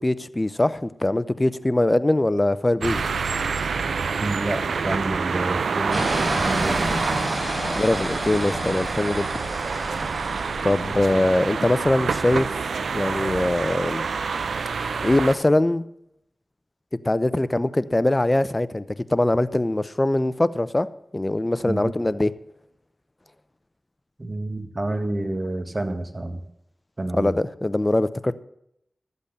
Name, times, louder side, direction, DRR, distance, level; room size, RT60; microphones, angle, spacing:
voice 1, 0.0-3.0 7.7-9.3 10.6-12.6 12.9-14.1 15.0-15.8 17.0-18.8 19.1-20.9 21.1-22.3 27.1-28.3, left 1 dB, 25° left, 16 dB, 0.7 m, -22 dB
sound 1, 2.8-15.3, right 5 dB, 90° right, 0.6 m, -27 dB
voice 2, 4.2-7.0 21.7-21.9 24.2-26.4 27.0-27.3, right 2 dB, 35° right, 8 dB, 1.8 m, -29 dB
sound 2, 5.9-11.0, equal, 5° right, 4.8 m, -30 dB
13.5 x 8.2 x 6.8 m, 0.79 s
cardioid pair, 45°, 0 cm